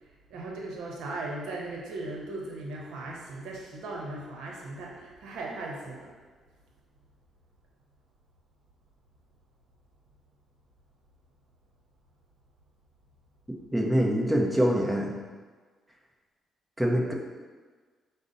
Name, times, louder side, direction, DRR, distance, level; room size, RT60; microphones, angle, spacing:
voice 1, 0.3-6.1, right 2 dB, 85° right, -1 dB, 0.7 m, -38 dB
voice 2, 13.7-15.2 16.8-17.1, equal, 10° right, 0 dB, 0.6 m, -24 dB
4.9 x 2.0 x 3.9 m, 1.5 s
cardioid pair, 90°, 0 cm